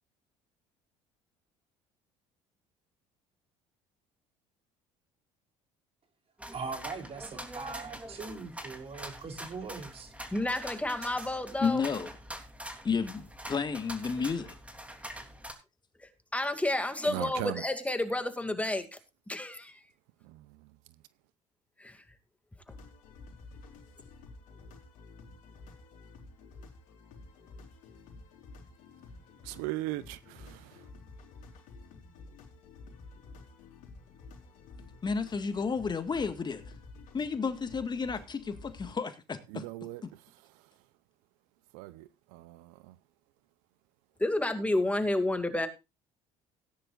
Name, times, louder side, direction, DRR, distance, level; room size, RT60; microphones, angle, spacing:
sound 1, 6.4-15.5, right 1 dB, 10° right, 3.1 m, -44 dB
voice 1, 6.5-10.1, right 4 dB, 45° right, 3.5 m, -41 dB
voice 2, 10.3-11.9 16.0-19.0 19.3-19.8 21.8-22.0 22.7-22.8 44.2-45.7, left 1 dB, 10° left, 2.4 m, -31 dB
voice 3, 11.6-12.1 12.8-14.5 35.0-36.6 37.1-39.7, left 5 dB, 30° left, 1.7 m, -32 dB
voice 4, 17.1-17.6 20.3-20.4 29.4-30.7 39.5-40.0 41.7-42.9, right 17 dB, 75° right, 0.7 m, -38 dB
sound 2, 22.7-38.9, left 3 dB, 65° left, 3.9 m, -51 dB
18.0 x 10.0 x 2.5 m
supercardioid pair, 75°, 14 cm